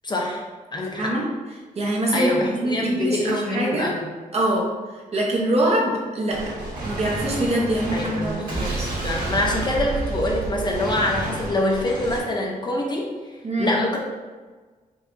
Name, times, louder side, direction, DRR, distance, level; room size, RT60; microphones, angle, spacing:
voice 1, 0.0-0.4 0.7-1.1 2.1-4.1 7.9-13.1 13.6-14.0, left 1 dB, 30° left, -1 dB, 0.5 m, -25 dB
voice 2, 0.9-1.3 1.8-3.9 4.3-4.7 5.1-6.5 6.8-8.7 13.4-13.7, right 1 dB, 45° right, -2 dB, 0.8 m, -24 dB
Gunshot gunfire, 6.3-12.2, right 2 dB, 70° right, 1.5 m, -30 dB
5.4 x 2.7 x 2.5 m, 1.4 s
wide cardioid pair, 160°, 15 cm